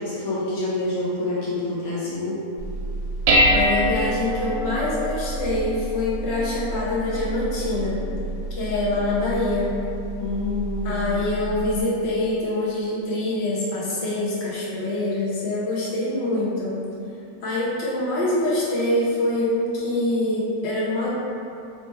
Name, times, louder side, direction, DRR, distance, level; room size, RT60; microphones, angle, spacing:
voice 1, 0.0-2.4 10.2-11.3, left 2 dB, 75° left, -7 dB, 1.2 m, -27 dB
Dishes pots and pans, 2.6-11.8, equal, 70° right, 0.9 m, -26 dB
voice 2, 3.5-8.0 8.6-9.8 10.8-16.8 17.4-21.2, left 1 dB, 50° left, -8 dB, 1.1 m, -25 dB
3.3 x 2.9 x 4.3 m, 2.6 s
omnidirectional pair, 1.6 m